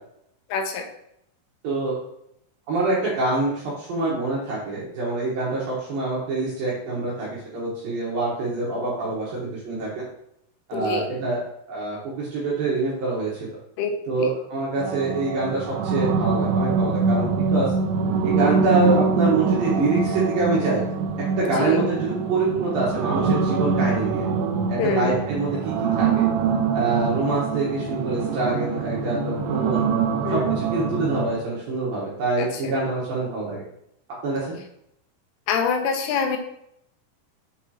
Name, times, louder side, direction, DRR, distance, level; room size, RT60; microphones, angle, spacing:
voice 1, 0.5-0.9 10.7-11.1 13.8-14.3 21.4-21.8 24.8-25.2 30.2-30.5 32.4-32.7 35.5-36.4, left 5 dB, 85° left, 3 dB, 3.3 m, -26 dB
voice 2, 1.6-2.0 2.7-10.0 10.7-11.4 11.7-13.6 14.1-17.7 18.2-20.8 21.4-24.2 24.7-26.3 26.7-29.8 30.3-33.6 34.2-34.6, right 3 dB, 70° right, -5 dB, 2.3 m, -25 dB
sound 1, 14.8-31.3, right 5 dB, 85° right, 2.4 m, -24 dB
7.3 x 5.1 x 2.8 m, 0.75 s
omnidirectional pair, 5.6 m